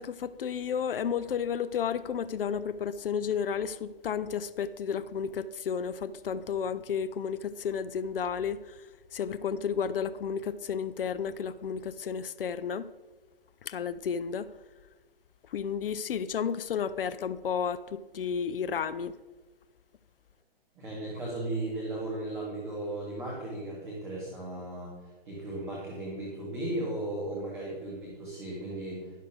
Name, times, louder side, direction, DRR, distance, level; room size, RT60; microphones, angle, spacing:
voice 1, 0.0-8.8 9.1-12.9 13.6-14.5 15.5-19.1, left 7 dB, 65° left, 0.5 m, -32 dB
voice 2, 20.8-29.1, right 1 dB, 5° right, 0.3 m, -36 dB
11.0 x 6.3 x 3.9 m
hypercardioid pair, 145°, 30 cm